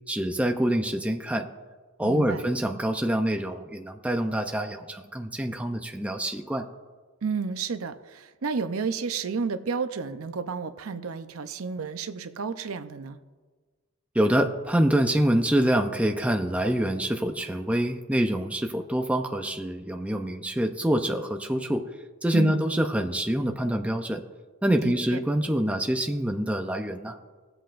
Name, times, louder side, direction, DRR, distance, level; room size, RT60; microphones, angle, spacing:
voice 1, 0.1-1.5 2.0-6.7 14.1-21.8 22.2-24.2 24.6-27.2, right 1 dB, 5° right, 4 dB, 0.5 m, -26 dB
voice 2, 2.0-2.5 7.2-13.2 22.3-22.6 24.8-25.2, right 5 dB, 85° right, 10 dB, 0.6 m, -31 dB
19.5 x 7.9 x 2.5 m, 1.4 s
head